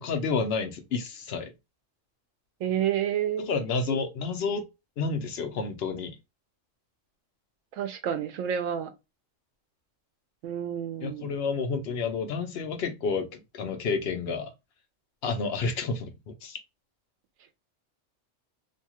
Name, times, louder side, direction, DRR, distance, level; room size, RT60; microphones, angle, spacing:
voice 1, 0.0-1.5 3.4-4.6 5.0-6.2 11.0-14.5 15.2-16.6, left 4 dB, 60° left, 0.8 m, -30 dB
voice 2, 2.6-3.5 7.8-8.9 10.4-11.3, right 9 dB, 80° right, 1.0 m, -29 dB
2.7 x 2.3 x 2.9 m
omnidirectional pair, 1.3 m